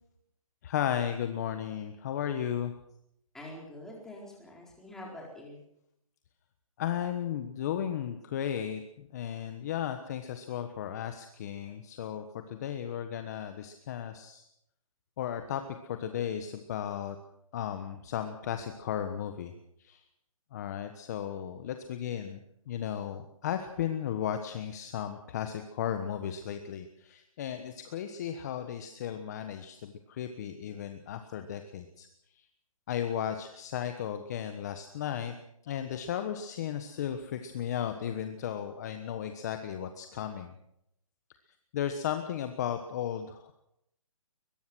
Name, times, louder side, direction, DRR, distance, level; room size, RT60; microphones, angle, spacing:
voice 1, 0.6-2.7 6.8-14.4 15.2-17.2 17.5-19.5 19.8-20.0 20.5-22.4 22.7-32.1 32.9-35.3 35.6-40.5 41.7-43.5, left 9 dB, 30° left, 7 dB, 1.3 m, -35 dB
voice 2, 3.3-5.6, left 1 dB, 5° left, -2 dB, 4.4 m, -45 dB
22.5 x 21.0 x 6.3 m, 0.79 s
hypercardioid pair, 165°, 18 cm